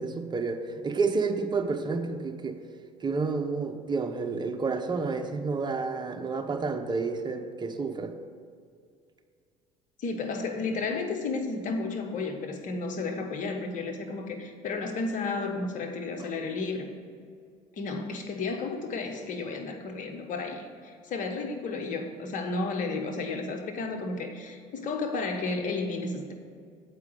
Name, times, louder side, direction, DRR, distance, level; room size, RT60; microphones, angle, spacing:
voice 1, 0.0-2.6 3.0-8.1, right 4 dB, 25° right, 5 dB, 1.0 m, -30 dB
voice 2, 10.0-16.9 17.8-26.3, left 3 dB, 55° left, 4 dB, 1.2 m, -32 dB
7.6 x 4.8 x 6.6 m, 2.2 s
hypercardioid pair, 70°, 16 cm